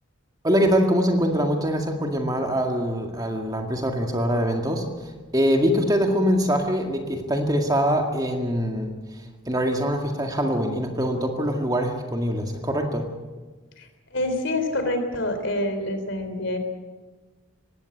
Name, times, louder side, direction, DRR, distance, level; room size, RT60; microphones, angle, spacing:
voice 1, 0.4-13.1, equal, 20° right, 3 dB, 2.0 m, -24 dB
voice 2, 13.8-16.6, left 1 dB, 60° left, 7 dB, 3.6 m, -27 dB
20.0 x 16.5 x 8.6 m, 1.3 s
head